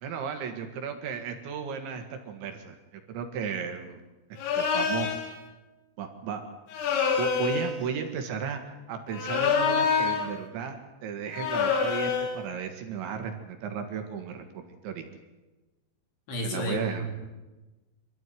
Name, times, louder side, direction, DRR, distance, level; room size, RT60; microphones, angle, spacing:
voice 1, 0.0-2.8 3.1-4.0 4.3-5.1 6.0-6.4 7.2-8.6 8.9-15.1 16.4-17.1, right 7 dB, 65° right, 5 dB, 4.1 m, -34 dB
sound 1, 4.4-5.3 6.7-7.8 9.1-10.3 11.3-12.4, left 6 dB, 80° left, 5.2 m, -26 dB
voice 2, 16.3-17.3, equal, 55° left, 2 dB, 5.3 m, -32 dB
25.5 x 14.0 x 9.5 m, 1.1 s
omnidirectional pair, 5.9 m